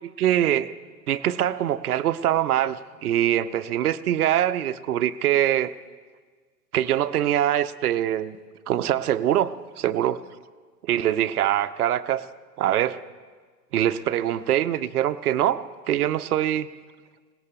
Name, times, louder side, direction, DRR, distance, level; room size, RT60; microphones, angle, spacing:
voice 1, 0.0-0.7 1.1-5.7 6.7-8.4 8.7-10.2 10.8-12.2 12.6-13.0 13.7-16.7, right 11 dB, 60° right, 14 dB, 0.7 m, -23 dB
20.0 x 18.0 x 3.5 m, 1.5 s
figure-of-eight pair, 95°, 50 cm